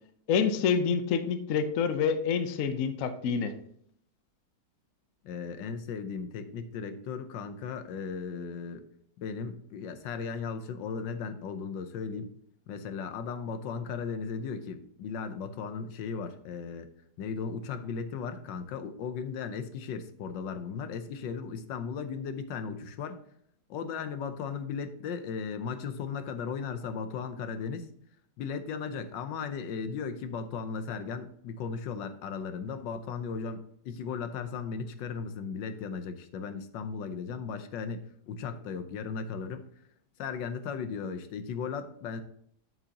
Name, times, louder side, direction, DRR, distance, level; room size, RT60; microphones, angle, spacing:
voice 1, 0.3-3.5, left 6 dB, 60° left, 9 dB, 0.9 m, -27 dB
voice 2, 5.2-8.9 9.2-12.3 12.7-16.9 17.2-23.2 23.7-27.9 28.4-39.7 40.2-42.2, left 6 dB, 80° left, 10 dB, 1.4 m, -36 dB
7.8 x 7.6 x 2.8 m, 0.66 s
omnidirectional pair, 2.0 m